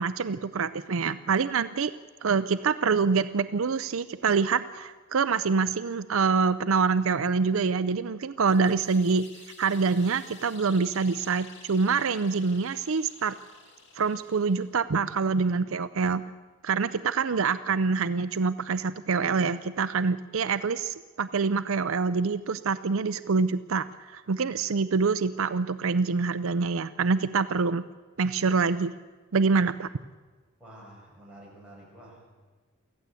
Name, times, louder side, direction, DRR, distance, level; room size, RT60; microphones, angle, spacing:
voice 1, 0.0-1.9 2.2-9.3 9.6-13.3 14.0-16.2 16.6-27.8 28.2-28.9 29.3-29.9, right 5 dB, 65° right, 13 dB, 0.5 m, -26 dB
sound 1, 8.4-14.8, left 4 dB, 55° left, 2.5 m, -51 dB
voice 2, 30.6-32.2, right 1 dB, 5° right, -6 dB, 7.2 m, -49 dB
24.0 x 15.0 x 8.3 m, 1.4 s
head